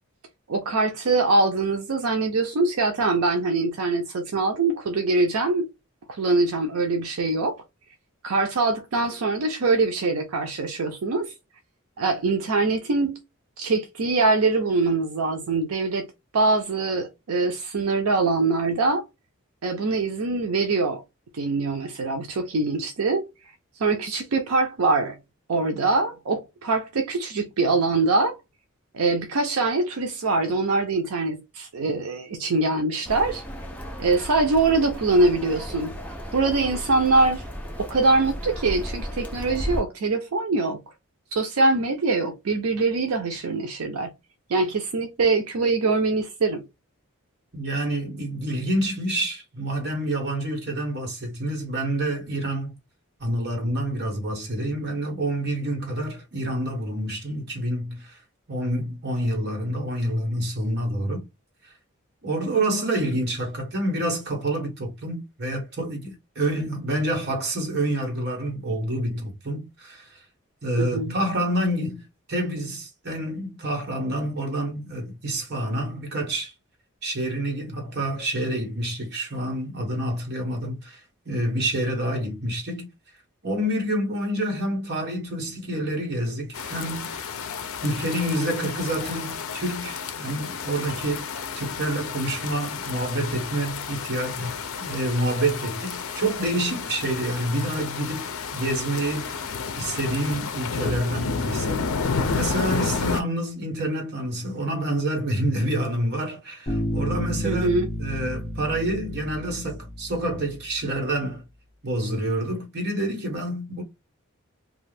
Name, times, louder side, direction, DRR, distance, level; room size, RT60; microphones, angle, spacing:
voice 1, 0.5-5.7 6.1-7.6 8.2-11.3 12.0-13.2 13.6-16.1 16.3-19.0 19.6-21.0 21.3-23.2 23.8-25.2 25.5-28.4 28.9-33.4 34.0-35.9 36.3-37.4 37.8-40.8 41.3-44.1 44.5-46.6 70.8-71.1 107.4-107.9, right 3 dB, 85° right, 0.5 m, -23 dB
sound 1, 33.0-39.8, equal, 5° left, 0.5 m, -34 dB
voice 2, 47.5-52.7 53.2-58.2 58.5-61.2 61.6-61.7 62.2-70.2 70.6-76.5 77.0-82.9 83.4-87.3 87.8-99.4 99.7-111.4 111.8-113.8, right 1 dB, 50° right, 1.2 m, -28 dB
sound 2, 86.5-103.2, left 5 dB, 75° left, 0.5 m, -31 dB
Bass guitar, 106.7-110.4, equal, 35° left, 1.2 m, -31 dB
2.5 x 2.3 x 3.3 m
head